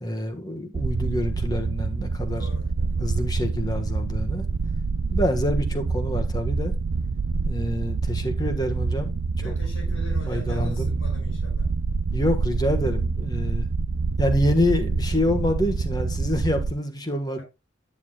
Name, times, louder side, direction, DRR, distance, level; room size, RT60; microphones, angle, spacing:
voice 1, 0.0-2.5 3.0-4.5 5.1-6.7 7.5-9.1 9.4-9.5 9.8-10.9 12.1-13.7 14.2-17.4, left 1 dB, 20° left, 1.4 m, -27 dB
sound 1, 0.7-16.7, right 4 dB, 75° right, 0.5 m, -26 dB
voice 2, 2.4-3.1 9.4-11.7, left 1 dB, 85° left, 5.8 m, -42 dB
9.7 x 9.6 x 2.3 m
head